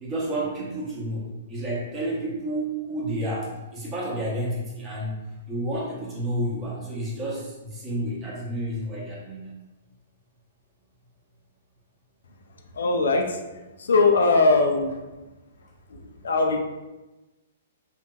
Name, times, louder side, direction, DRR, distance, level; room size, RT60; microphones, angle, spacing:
voice 1, 0.0-5.2 5.5-9.6, right 1 dB, 25° right, -5 dB, 1.1 m, -30 dB
voice 2, 12.7-13.4 13.8-15.0 15.9-16.6, left 3 dB, 80° left, 3 dB, 0.4 m, -21 dB
2.9 x 2.7 x 2.3 m, 1.1 s
hypercardioid pair, 130°, 0 cm